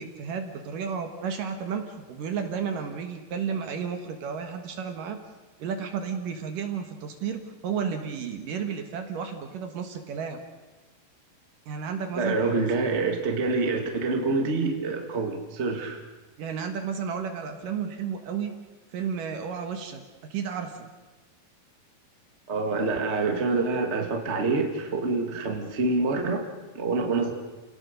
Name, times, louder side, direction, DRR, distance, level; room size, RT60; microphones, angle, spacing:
voice 1, 0.0-5.2 5.6-10.4 11.7-12.4 16.4-18.6 18.9-20.0 20.3-20.9, right 6 dB, 60° right, 5 dB, 2.9 m, -32 dB
voice 2, 12.2-16.0 22.5-26.4 26.7-27.3, right 3 dB, 25° right, 3 dB, 1.5 m, -26 dB
29.5 x 18.0 x 6.8 m, 1.2 s
omnidirectional pair, 4.7 m